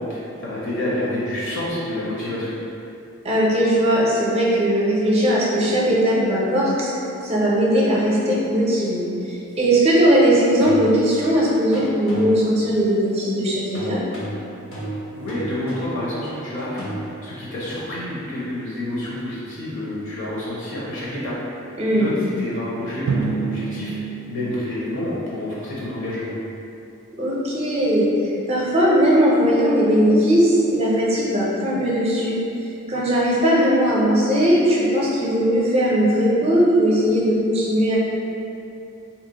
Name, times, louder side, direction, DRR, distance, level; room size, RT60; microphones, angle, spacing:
voice 1, 0.0-2.5 15.1-16.9 17.2-21.3 21.9-23.9 24.3-26.3, left 1 dB, 55° left, -7 dB, 0.6 m, -28 dB
voice 2, 3.2-6.9 7.2-14.0 21.8-22.1 27.2-32.4 32.9-38.0, equal, 30° right, -5 dB, 0.5 m, -19 dB
sound 1, 8.9-9.0 10.6-11.3 11.7-12.6 13.7-17.1, right 2 dB, 85° left, 0.9 m, -33 dB
Drum, 23.1-25.8, right 4 dB, 90° right, 0.3 m, -29 dB
2.8 x 2.1 x 3.9 m, 2.7 s
head